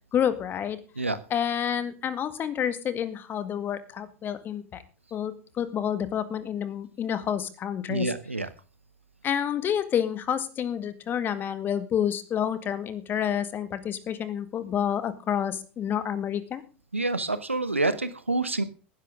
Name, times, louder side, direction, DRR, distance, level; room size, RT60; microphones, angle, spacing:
voice 1, 0.1-0.8 1.3-4.8 5.1-8.1 9.2-16.6, left 9 dB, 30° left, 13 dB, 1.9 m, -29 dB
voice 2, 7.9-8.5 16.9-18.6, right 2 dB, 85° right, 13 dB, 1.2 m, -27 dB
18.5 x 10.5 x 3.7 m, 0.36 s
figure-of-eight pair, 80°, 7 cm